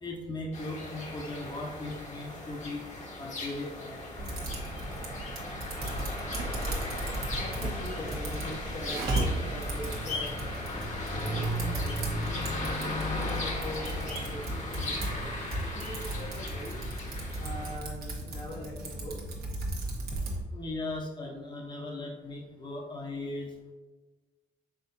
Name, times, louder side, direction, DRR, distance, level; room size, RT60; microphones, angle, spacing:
voice 1, 0.0-2.8 3.2-4.1 20.5-23.5, left 2 dB, 25° left, 0 dB, 0.9 m, -38 dB
sound 1, 0.5-17.8, left 1 dB, 45° left, 1.1 m, -36 dB
Typing, 4.2-20.4, right 2 dB, 65° right, 1.2 m, -36 dB
voice 2, 7.0-19.2, left 1 dB, 75° left, -3 dB, 1.4 m, -43 dB
5.7 x 3.6 x 2.6 m, 1.3 s
supercardioid pair, 65°, 17 cm